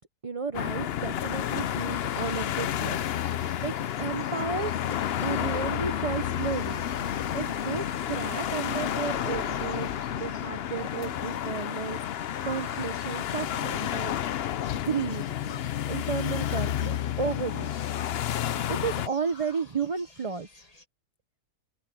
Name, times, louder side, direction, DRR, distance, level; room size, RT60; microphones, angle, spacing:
voice 1, 0.2-3.0 3.6-3.7 4.0-4.7 5.2-6.8 7.3-9.9 10.2-12.0 12.4-14.1 14.7-15.6 15.9-17.9 18.7-20.5, right 5 dB, 30° right, 0.7 m, -33 dB
sound 1, 0.5-19.1, left 10 dB, 65° left, 0.6 m, -30 dB
sound 2, 1.7-20.8, left 1 dB, 25° left, 3.0 m, -53 dB
sound 3, 5.5-10.5, right 2 dB, 80° right, 7.6 m, -45 dB
open air
omnidirectional pair, 1.7 m